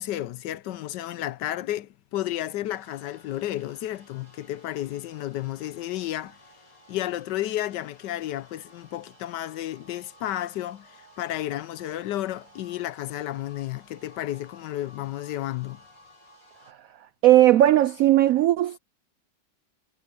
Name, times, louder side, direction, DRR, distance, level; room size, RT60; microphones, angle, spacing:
voice 1, 0.0-6.4 6.9-15.8, left 13 dB, 70° left, 1.2 m, -32 dB
sound 1, 2.7-16.7, equal, 45° left, 7.2 m, -55 dB
voice 2, 17.2-18.8, right 14 dB, 85° right, 0.7 m, -17 dB
omnidirectional pair, 2.0 m